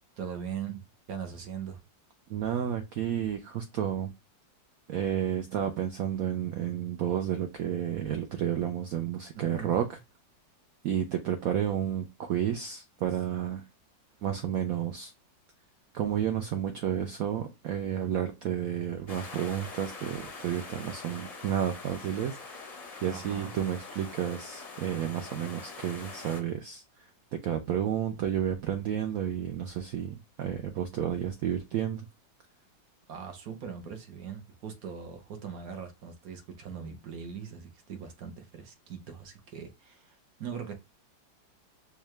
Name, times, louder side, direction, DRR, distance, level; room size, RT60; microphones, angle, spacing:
voice 1, 0.2-1.8 9.3-9.8 13.1-13.3 23.1-23.7 33.1-40.7, right 7 dB, 60° right, 1.0 m, -41 dB
voice 2, 2.3-4.1 4.9-10.0 10.8-13.6 14.2-15.1 15.9-26.8 27.4-32.1, right 9 dB, 85° right, 0.7 m, -31 dB
sound 1, 19.1-26.4, left 4 dB, 45° left, 0.4 m, -44 dB
4.6 x 2.3 x 3.1 m
omnidirectional pair, 2.1 m